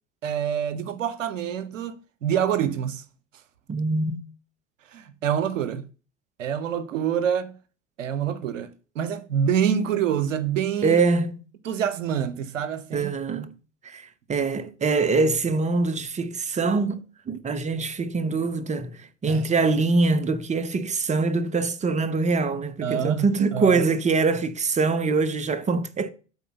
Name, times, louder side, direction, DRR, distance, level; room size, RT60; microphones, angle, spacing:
voice 1, 0.2-3.0 4.9-5.9 6.4-7.6 8.0-11.0 11.6-13.1 19.3-19.4 22.8-23.3 23.5-23.8, right 8 dB, 80° right, 0.7 m, -26 dB
voice 2, 3.7-4.2 10.8-11.4 12.9-13.5 13.8-26.1, right 4 dB, 20° right, 0.8 m, -24 dB
8.3 x 4.0 x 6.7 m
figure-of-eight pair, 70°, 38 cm